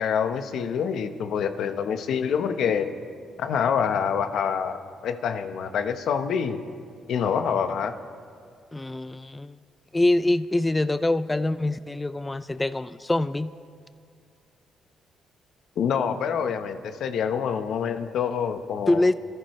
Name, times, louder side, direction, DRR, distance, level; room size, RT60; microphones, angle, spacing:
voice 1, 0.0-2.9 3.4-4.8 5.0-6.6 7.1-7.9 15.8-19.0, left 7 dB, 70° left, 8 dB, 1.0 m, -26 dB
voice 2, 8.7-9.6 9.9-13.5 18.9-19.1, left 2 dB, 15° left, 13 dB, 0.4 m, -24 dB
29.5 x 14.5 x 3.2 m, 2.2 s
cardioid pair, 90°, 0 cm